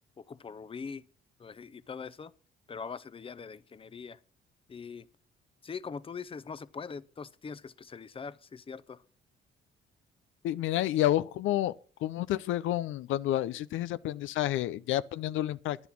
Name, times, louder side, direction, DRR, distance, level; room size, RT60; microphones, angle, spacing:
voice 1, 0.2-1.0 1.4-2.3 2.7-4.2 4.7-5.0 5.6-9.0, left 5 dB, 25° left, 0.7 m, -42 dB
voice 2, 10.4-11.7 12.0-15.8, left 13 dB, 85° left, 0.5 m, -29 dB
11.0 x 10.5 x 6.0 m
cardioid pair, 90°, 20 cm